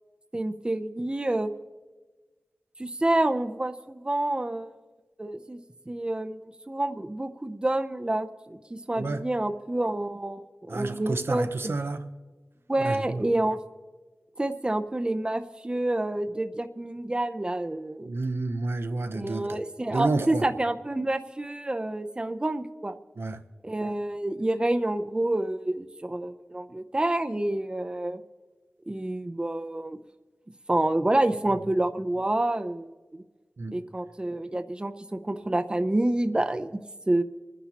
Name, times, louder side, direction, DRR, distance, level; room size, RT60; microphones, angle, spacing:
voice 1, 0.3-1.5 2.8-4.7 5.2-5.6 5.9-11.7 12.7-13.6 14.4-18.1 19.1-23.0 23.6-28.2 28.9-30.0 30.7-32.9 33.7-36.8 37.1-37.2, right 1 dB, 20° right, 0.6 m, -28 dB
voice 2, 8.9-9.3 10.7-12.1 12.8-13.2 18.0-19.6 19.9-20.5 23.2-23.4 33.6-33.7, right 3 dB, 65° right, 0.7 m, -30 dB
26.5 x 10.0 x 2.9 m
wide cardioid pair, 70°, 4 cm